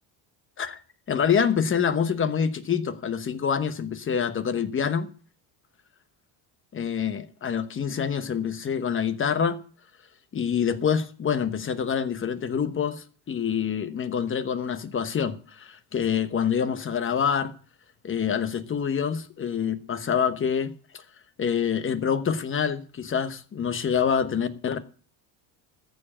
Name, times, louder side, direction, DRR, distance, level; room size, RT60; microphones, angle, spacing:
voice 1, 1.1-5.1 6.7-9.6 10.3-17.5 18.0-21.0 21.4-24.8, left 7 dB, 25° left, 1.1 m, -26 dB
14.0 x 4.9 x 8.8 m
cardioid pair, 125°, 47 cm